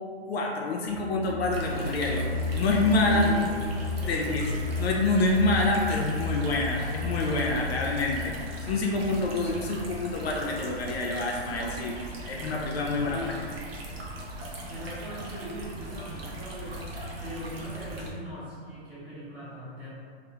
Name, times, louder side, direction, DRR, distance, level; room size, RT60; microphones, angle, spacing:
voice 1, 0.3-3.3 4.1-4.4 4.8-8.3 8.6-12.0 12.3-13.2, left 2 dB, 70° left, -1 dB, 0.5 m, -27 dB
sound 1, 0.9-8.6, left 3 dB, 25° right, 0.5 m, -33 dB
sound 2, 1.5-18.1, right 1 dB, 65° right, 0.6 m, -39 dB
voice 2, 3.1-3.5 4.0-4.4 12.9-13.6 14.7-16.9 17.2-19.9, equal, 5° right, -15 dB, 0.9 m, -40 dB
2.3 x 2.0 x 2.8 m, 2.1 s
hypercardioid pair, 150°, 33 cm